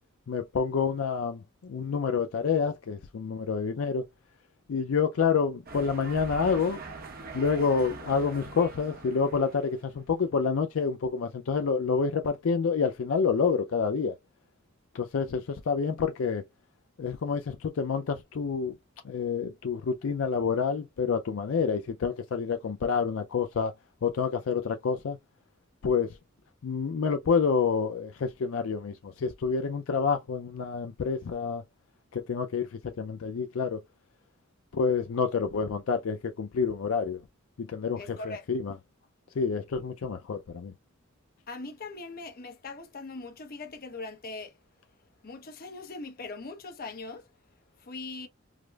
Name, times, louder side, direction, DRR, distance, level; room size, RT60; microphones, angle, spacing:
voice 1, 0.3-4.1 4.7-6.8 7.3-14.1 14.9-16.4 17.0-18.7 19.0-23.7 24.0-25.2 25.8-26.2 26.6-31.6 32.1-33.8 34.7-37.2 37.6-38.7 39.4-40.7, left 5 dB, 70° left, 0.4 m, -28 dB
sound 1, 5.7-9.9, right 3 dB, 45° right, 0.8 m, -43 dB
voice 2, 38.0-38.5 41.5-44.5 45.2-47.3 47.8-48.3, left 3 dB, 45° left, 0.8 m, -40 dB
4.9 x 2.0 x 2.3 m
head